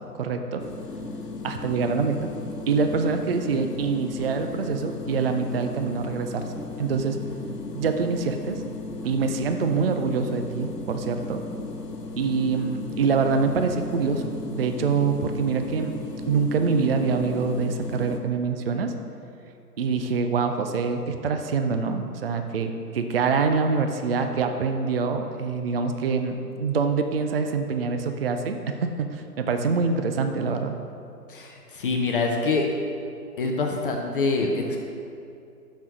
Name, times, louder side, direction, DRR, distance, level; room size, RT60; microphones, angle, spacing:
voice 1, 0.1-0.6 1.4-2.3 2.7-6.4 6.8-7.2 7.7-8.6 9.0-11.4 12.2-15.9 16.3-18.9 19.8-30.8, right 5 dB, 40° right, 6 dB, 0.5 m, -25 dB
sound 1, 0.6-18.2, left 3 dB, 90° left, 1.0 m, -36 dB
voice 2, 31.3-32.6 33.4-34.8, left 3 dB, 35° left, 2 dB, 0.7 m, -25 dB
6.2 x 6.0 x 6.1 m, 2.6 s
figure-of-eight pair, 130°, 47 cm